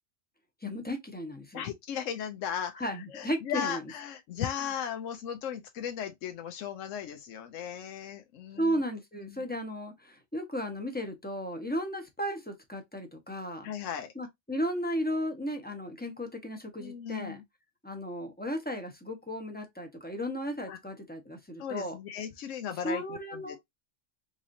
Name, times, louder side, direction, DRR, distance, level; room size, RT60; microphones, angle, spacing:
voice 1, 0.6-1.6 2.8-3.8 8.6-13.7 14.2-17.4 17.8-22.0 22.8-23.6, equal, 10° left, 0.7 m, -35 dB
voice 2, 1.5-8.8 9.2-9.5 13.6-14.1 16.8-17.4 20.7-20.8 21.6-23.6, left 9 dB, 75° left, 0.9 m, -37 dB
3.7 x 3.1 x 2.5 m
omnidirectional pair, 1.4 m